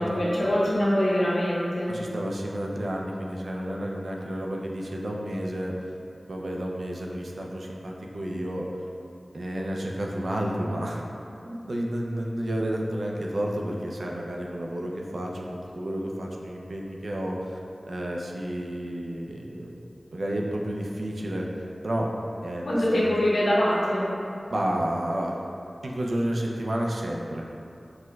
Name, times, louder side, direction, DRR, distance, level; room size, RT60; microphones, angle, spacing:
voice 1, 0.0-2.0 22.7-24.2, equal, 85° left, -7 dB, 0.6 m, -24 dB
voice 2, 1.9-5.9 6.3-8.6 9.3-11.0 11.4-17.6 17.9-19.7 20.1-21.5 21.8-22.1 22.4-23.1 24.5-25.4 25.8-27.5, right 1 dB, 75° right, -1 dB, 0.3 m, -31 dB
4.4 x 2.1 x 2.2 m, 2.6 s
wide cardioid pair, 45°, 0 cm